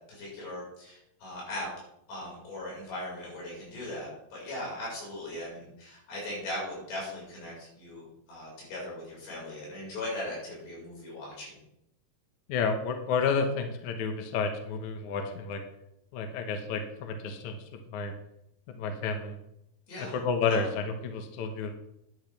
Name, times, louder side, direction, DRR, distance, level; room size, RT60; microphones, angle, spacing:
voice 1, 0.1-1.7 2.1-11.6 19.9-20.2 20.5-20.7, left 1 dB, 90° left, -4 dB, 7.2 m, -39 dB
voice 2, 12.5-15.6 16.1-17.6 17.9-18.1 18.8-19.4 20.0-21.7, left 5 dB, 65° left, 5 dB, 2.0 m, -30 dB
11.0 x 11.0 x 3.4 m, 0.79 s
omnidirectional pair, 4.8 m